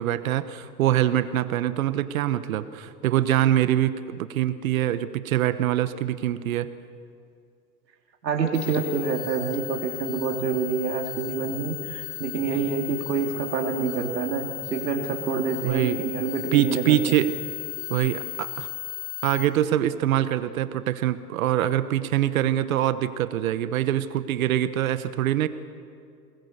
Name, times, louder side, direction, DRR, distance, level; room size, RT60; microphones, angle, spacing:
voice 1, 0.0-6.7 15.6-16.0 16.5-17.4 17.9-18.7 19.2-25.5, right 12 dB, 55° right, 13 dB, 1.2 m, -24 dB
voice 2, 8.2-17.2, right 5 dB, 85° right, 2 dB, 3.2 m, -27 dB
sound 1, 8.5-19.5, left 14 dB, 70° left, 4.0 m, -36 dB
28.0 x 20.5 x 6.8 m, 2.3 s
hypercardioid pair, 135°, 49 cm